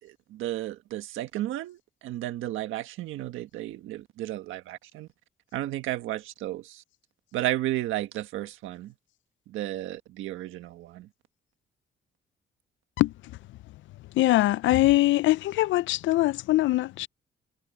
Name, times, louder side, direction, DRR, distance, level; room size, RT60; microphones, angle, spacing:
voice 1, 0.0-5.1 5.5-6.8 7.3-8.9 9.5-11.1, right 14 dB, 90° right, 1.5 m, -33 dB
voice 2, 14.1-17.1, left 17 dB, 70° left, 0.4 m, -22 dB
cardioid pair, 90°, 20 cm